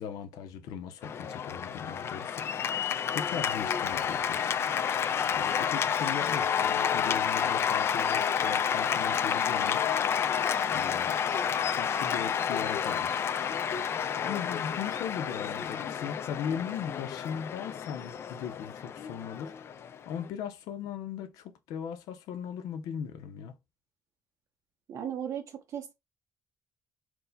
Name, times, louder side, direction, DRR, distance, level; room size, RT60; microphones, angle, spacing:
voice 1, 0.0-5.0 5.3-9.9 10.7-11.2 11.7-13.2 14.2-19.8 20.1-23.6, left 8 dB, 90° left, 0.6 m, -38 dB
Cheering / Applause, 1.0-20.3, left 8 dB, 45° left, 0.4 m, -30 dB
voice 2, 24.9-25.9, right 9 dB, 60° right, 0.7 m, -36 dB
4.6 x 2.1 x 3.9 m
cardioid pair, 120°, 6 cm